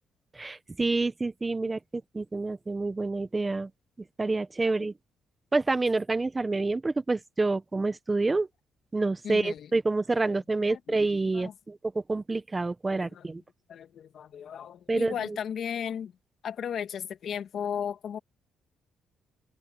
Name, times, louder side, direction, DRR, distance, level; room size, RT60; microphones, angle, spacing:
voice 1, 0.3-3.7 4.2-4.9 5.5-8.5 8.9-13.4 14.9-15.4, right 3 dB, 20° right, 1.3 m, -28 dB
voice 2, 9.2-9.7 10.3-10.4 10.7-10.8 11.3-11.5 12.9-13.3 13.7-16.1 16.4-18.2, left 8 dB, 65° left, 2.1 m, -35 dB
open air
cardioid pair, 90°, 0 cm